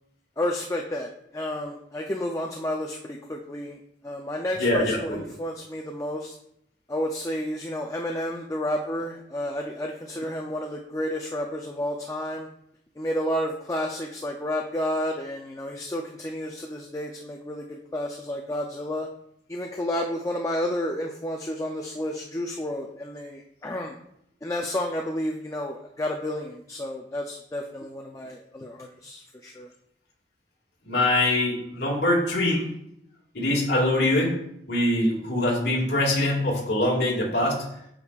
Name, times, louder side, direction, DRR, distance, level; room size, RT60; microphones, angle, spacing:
voice 1, 0.4-3.8 4.0-6.3 6.9-12.5 13.0-19.1 19.5-23.9 24.4-29.7, left 1 dB, 20° left, 1 dB, 0.4 m, -31 dB
voice 2, 4.6-5.2 30.8-32.7 33.3-34.4 34.7-37.7, left 1 dB, 65° left, -3 dB, 2.0 m, -23 dB
8.7 x 6.2 x 2.4 m, 0.75 s
head